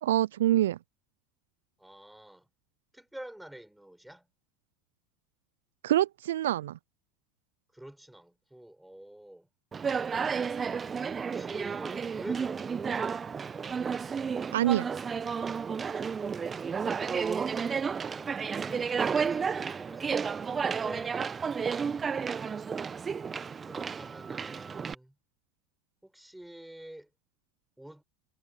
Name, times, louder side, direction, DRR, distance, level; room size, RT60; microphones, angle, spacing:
voice 1, 0.0-0.8 5.8-6.8 14.5-14.8, right 13 dB, 75° right, 0.5 m, -25 dB
voice 2, 1.8-2.5 2.9-4.3 7.7-9.5 11.2-13.2 17.3-17.7 18.0-21.2 23.7-25.2 26.0-27.1 27.8-28.0, right 1 dB, 5° right, 5.0 m, -48 dB
Conversation, 9.7-24.9, right 6 dB, 25° right, 0.9 m, -32 dB
hypercardioid pair, 75°, 0 cm